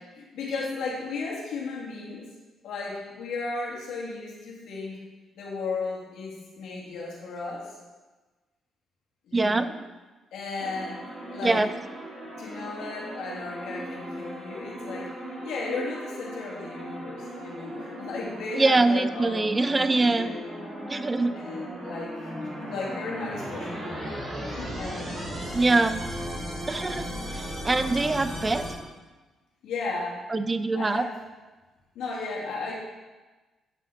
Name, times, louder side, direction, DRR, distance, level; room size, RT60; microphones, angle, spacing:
voice 1, 0.2-2.3 2.6-5.0 5.4-7.7 9.3-9.7 10.3-11.0 11.3-11.6 12.4-15.2 15.4-20.6 21.3-25.3 29.6-30.2 30.7-31.2 31.9-32.7, left 3 dB, 80° left, -4 dB, 2.6 m, -35 dB
voice 2, 9.3-9.7 11.4-11.7 18.6-20.3 20.9-21.3 25.5-26.0 26.7-28.8 30.3-31.1, right 3 dB, 25° right, 12 dB, 0.4 m, -24 dB
sound 1, 10.6-28.7, equal, 40° right, 3.2 m, -37 dB
9.8 x 6.5 x 4.3 m, 1.2 s
cardioid pair, 90°, 0 cm